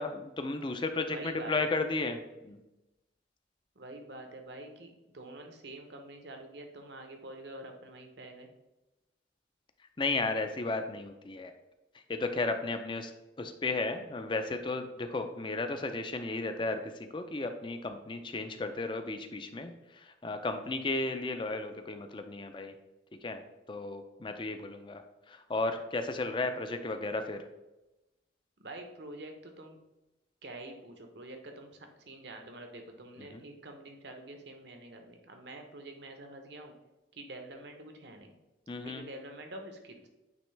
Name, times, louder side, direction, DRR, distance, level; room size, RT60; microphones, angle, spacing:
voice 1, 0.0-2.2 2.4-2.6 10.0-11.5 12.1-13.1 13.4-16.8 17.1-22.7 23.2-23.4 23.7-25.0 25.3-27.4 33.3-33.4 38.7-39.1, left 3 dB, 25° left, 7 dB, 0.4 m, -34 dB
voice 2, 1.1-1.9 3.7-8.5 28.6-29.8 30.4-36.7 37.1-38.4 38.8-40.1, right 2 dB, 70° right, 4 dB, 0.9 m, -46 dB
9.1 x 3.1 x 3.3 m, 1.0 s
head